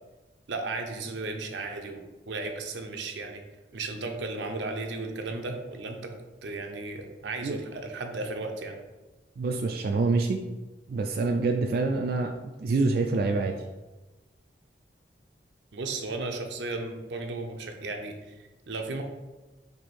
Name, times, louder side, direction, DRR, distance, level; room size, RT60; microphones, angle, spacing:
voice 1, 0.5-3.4 3.7-6.1 6.4-8.8 15.7-19.0, right 3 dB, 85° right, 4 dB, 0.7 m, -35 dB
voice 2, 9.4-10.4 10.9-12.3 12.6-13.5, right 3 dB, 55° right, 3 dB, 0.3 m, -26 dB
4.6 x 2.7 x 4.2 m, 1.1 s
head